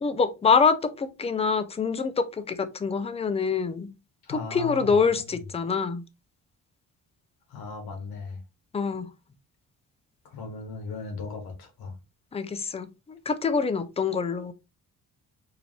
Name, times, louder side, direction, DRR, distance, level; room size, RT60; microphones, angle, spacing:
voice 1, 0.0-3.9 4.3-6.0 8.7-9.1 12.3-14.5, left 5 dB, 15° left, 0.4 m, -25 dB
voice 2, 4.2-5.4 7.5-8.4 10.2-11.9, left 4 dB, 80° left, 1.5 m, -37 dB
4.7 x 2.6 x 3.0 m
cardioid pair, 120°, 36 cm